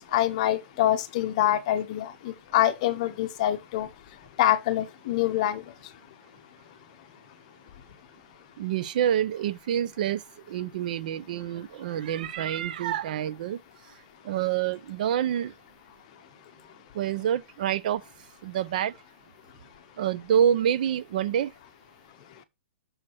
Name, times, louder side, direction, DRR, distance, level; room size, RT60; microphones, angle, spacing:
voice 1, 0.1-3.9 4.4-5.6, left 13 dB, 35° left, 0.8 m, -25 dB
voice 2, 8.6-10.2 10.5-13.6 14.2-15.5 16.9-18.0 18.4-18.9 20.0-21.5, right 10 dB, 45° right, 0.5 m, -27 dB
6.3 x 4.6 x 6.0 m
hypercardioid pair, 170°, 6 cm